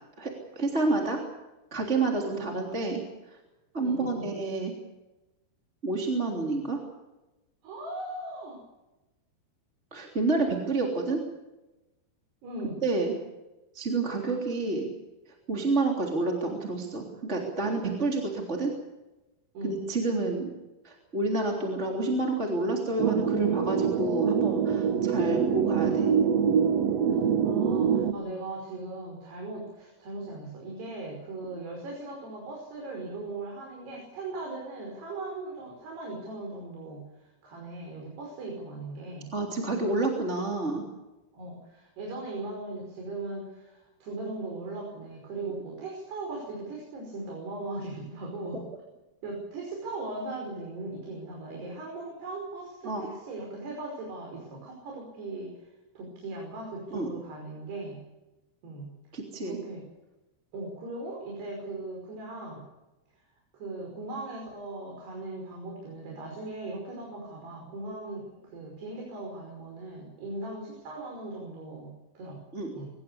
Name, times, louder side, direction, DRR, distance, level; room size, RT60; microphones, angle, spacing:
voice 1, 0.2-1.2 1.7-3.0 3.7-4.7 5.8-6.8 9.9-11.2 12.8-13.1 13.7-14.9 15.5-18.7 19.6-20.5 20.8-26.1 39.3-40.8 52.8-53.0 56.9-57.1 59.1-59.6 72.5-72.7, right 2 dB, 20° right, 0 dB, 3.1 m, -29 dB
voice 2, 2.3-2.6 3.8-4.3 7.6-8.6 12.4-12.8 19.5-19.8 27.1-39.3 41.3-48.6 49.2-58.0 58.6-58.9 59.4-59.8 60.5-62.6 63.5-72.4 72.7-72.9, right 2 dB, 80° right, -1 dB, 7.4 m, -39 dB
sound 1, 23.0-28.1, right 7 dB, 60° right, 1.8 m, -25 dB
24.5 x 20.0 x 7.1 m, 1.0 s
omnidirectional pair, 4.7 m